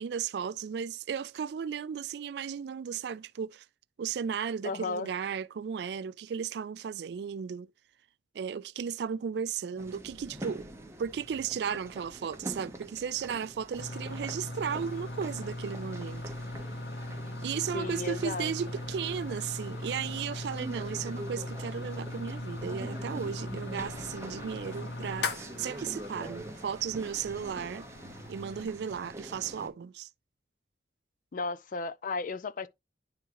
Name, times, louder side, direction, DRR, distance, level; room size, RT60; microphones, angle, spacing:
voice 1, 0.0-3.6 4.0-7.7 8.3-10.7 11.0-16.2 17.4-27.8 28.3-30.1, right 7 dB, 65° right, 0.3 m, -35 dB
voice 2, 4.6-5.1 17.7-18.5 31.3-32.7, left 3 dB, 45° left, 0.4 m, -34 dB
sound 1, 9.8-29.7, right 1 dB, 15° right, 1.0 m, -45 dB
sound 2, 13.8-28.6, left 2 dB, 65° left, 0.9 m, -39 dB
10.5 x 3.6 x 2.9 m
head